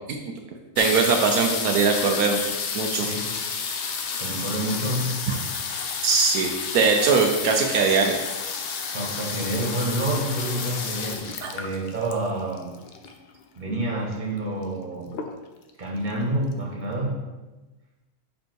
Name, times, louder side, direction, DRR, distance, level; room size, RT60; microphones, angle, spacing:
sound 1, 0.8-13.3 14.1-14.2 14.4-14.8 15.1-15.7 16.2-16.3 16.5-16.6, left 5 dB, 60° left, 0.6 m, -31 dB
voice 1, 0.8-2.4 2.7-3.1 6.0-8.2 11.4-11.5, right 5 dB, 80° right, 2 dB, 1.2 m, -21 dB
voice 2, 2.9-3.4 4.2-5.2 8.9-12.7 13.5-15.2 15.8-17.2, right 1 dB, 30° right, -3 dB, 1.7 m, -28 dB
5.3 x 5.3 x 4.5 m, 1.1 s
omnidirectional pair, 1.6 m